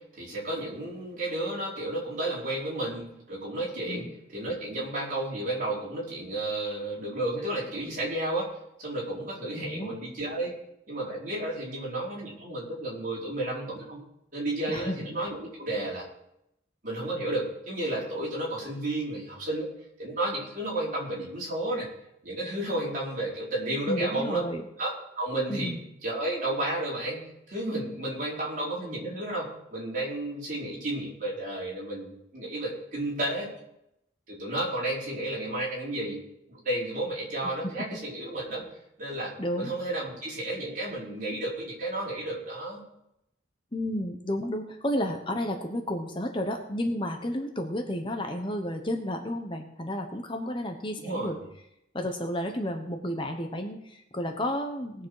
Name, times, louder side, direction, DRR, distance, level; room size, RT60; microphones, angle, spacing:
voice 1, 0.0-8.5 8.8-10.5 10.9-14.0 14.3-16.0 16.8-19.7 20.0-21.9 22.2-24.4 24.8-25.7 26.0-33.5 34.3-36.2 36.5-38.6 39.0-39.3 39.6-42.8 51.0-51.4, right 1 dB, 45° right, -6 dB, 4.9 m, -32 dB
voice 2, 9.6-9.9 14.7-14.9 23.9-24.6 25.5-25.8 39.4-39.7 43.7-51.4 51.9-55.1, left 1 dB, 25° left, 4 dB, 1.0 m, -32 dB
19.0 x 7.1 x 4.9 m, 0.80 s
head